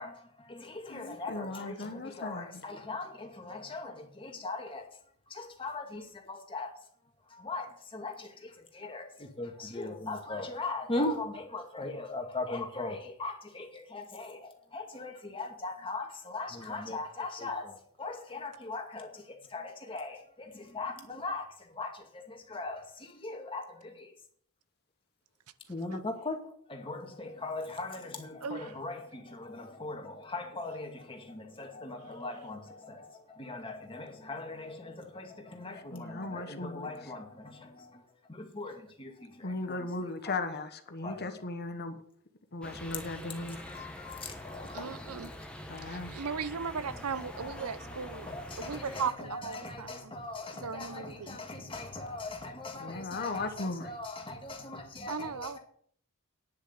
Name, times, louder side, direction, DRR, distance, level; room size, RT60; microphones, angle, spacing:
voice 1, 0.0-4.9 5.3-6.8 7.3-24.1 25.7-26.4 26.7-39.8 40.3-40.4 41.0-41.4 43.7-45.5 46.9-55.6, left 2 dB, 25° left, 2.2 m, -40 dB
voice 2, 0.9-2.6 35.7-37.1 39.4-42.0 42.5-43.6 45.7-46.1 52.7-53.9, left 2 dB, 50° left, 1.2 m, -37 dB
voice 3, 28.4-28.7 44.7-45.3 45.8-48.3 48.6-50.1 50.5-51.4 55.1-55.6, right 6 dB, 80° right, 0.7 m, -37 dB
sound 1, 42.6-49.1, left 1 dB, 5° left, 1.5 m, -45 dB
10.5 x 6.6 x 8.0 m
head